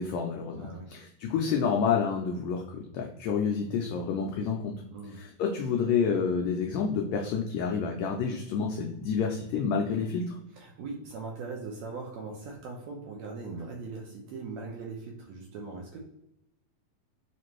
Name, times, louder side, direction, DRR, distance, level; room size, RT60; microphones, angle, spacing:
voice 1, 0.0-4.7 5.2-10.4, left 6 dB, 85° left, 1 dB, 1.5 m, -29 dB
voice 2, 0.5-0.9 4.9-5.2 10.5-16.0, right 4 dB, 75° right, -1 dB, 1.7 m, -40 dB
5.1 x 2.5 x 3.0 m, 0.84 s
omnidirectional pair, 3.6 m